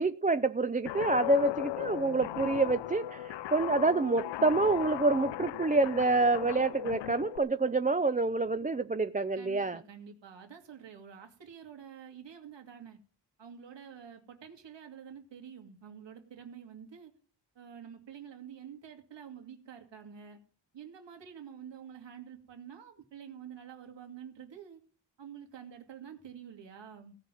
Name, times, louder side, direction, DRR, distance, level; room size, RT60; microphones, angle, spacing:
voice 1, 0.0-9.8, right 3 dB, 20° right, 0.6 m, -27 dB
Guitar, 0.9-7.4, left 14 dB, 80° left, 0.6 m, -37 dB
voice 2, 9.4-13.0 13.4-17.1 17.5-20.4 20.7-24.8 25.2-27.2, right 8 dB, 85° right, 2.7 m, -48 dB
16.5 x 5.6 x 9.2 m
cardioid pair, 70°, 42 cm